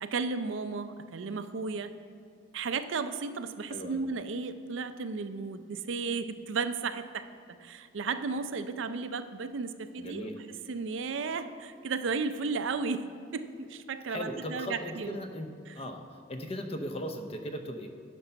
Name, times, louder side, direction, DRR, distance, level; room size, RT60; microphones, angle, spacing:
voice 1, 0.0-1.9 2.5-10.3 10.7-13.1 13.3-15.2 15.7-15.8, right 4 dB, 75° right, 10 dB, 0.5 m, -34 dB
voice 2, 3.7-4.0 10.0-10.4 14.1-15.5 15.8-16.0 16.3-17.9, equal, 30° left, 6 dB, 0.6 m, -37 dB
9.8 x 5.4 x 5.8 m, 2.3 s
head